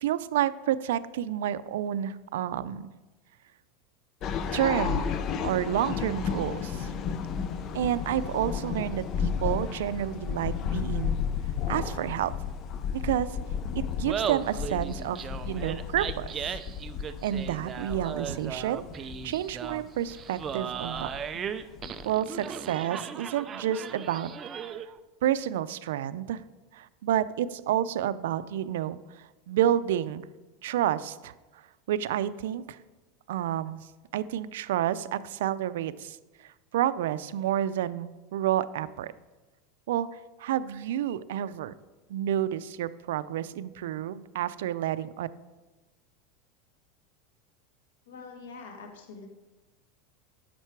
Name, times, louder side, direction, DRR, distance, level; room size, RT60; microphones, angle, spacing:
voice 1, 0.0-2.9 4.5-5.1 5.4-6.9 7.7-11.2 11.7-12.3 12.9-13.4 13.7-16.5 17.2-21.1 22.0-24.3 25.2-26.4 26.7-30.2 30.6-31.3 31.9-32.8 33.3-33.9 34.1-39.1 39.9-41.7 42.1-45.3, right 11 dB, 80° right, 15 dB, 0.4 m, -30 dB
sound 1, 4.2-22.1, left 7 dB, 35° left, 0.5 m, -33 dB
Laughter, 13.9-25.0, right 7 dB, 25° right, 0.4 m, -37 dB
voice 2, 48.1-49.3, left 4 dB, 90° left, 3 dB, 1.4 m, -44 dB
10.5 x 6.7 x 4.6 m, 1.2 s
supercardioid pair, 155°, 0 cm